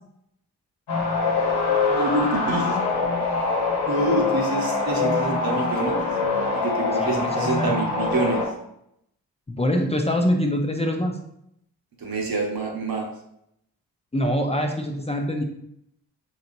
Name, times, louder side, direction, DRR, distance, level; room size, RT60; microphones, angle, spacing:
sound 1, 0.9-8.5, left 4 dB, 80° left, 1.1 m, -24 dB
voice 1, 1.9-2.8 3.8-6.0 6.5-8.4 12.0-13.1, right 2 dB, 60° right, 1 dB, 1.0 m, -26 dB
voice 2, 7.0-7.7 9.5-11.2 14.1-15.4, equal, 15° left, 2 dB, 0.6 m, -24 dB
4.1 x 2.9 x 2.6 m, 0.75 s
supercardioid pair, 40°, 40 cm